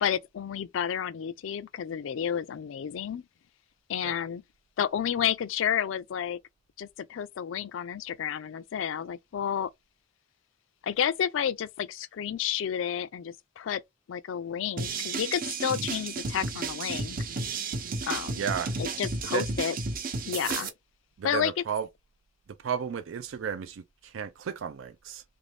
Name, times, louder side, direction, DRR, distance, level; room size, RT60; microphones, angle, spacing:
voice 1, 0.0-3.3 3.9-4.4 4.8-6.4 6.8-9.7 10.8-13.8 14.1-17.2 18.0-18.5 18.8-19.8 20.3-20.7 21.2-21.6, left 9 dB, 80° left, 0.4 m, -31 dB
sound 1, 14.8-20.7, right 3 dB, 45° right, 0.7 m, -33 dB
voice 2, 18.4-18.7 19.3-19.4 21.2-21.9 22.6-25.2, right 7 dB, 80° right, 0.4 m, -33 dB
3.0 x 2.6 x 3.3 m
head